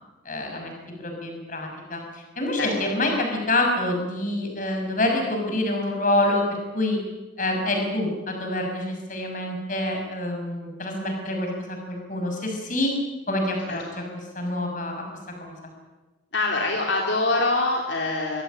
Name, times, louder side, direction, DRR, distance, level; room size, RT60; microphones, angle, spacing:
voice 1, 0.2-0.7 1.0-6.4 6.7-7.0 7.4-12.9 13.3-14.0 14.3-15.0 15.4-15.7, left 1 dB, 40° left, 3 dB, 6.1 m, -26 dB
voice 2, 13.7-14.1 16.3-18.4, left 2 dB, 70° left, 0 dB, 3.2 m, -24 dB
23.5 x 17.0 x 9.2 m, 1.2 s
head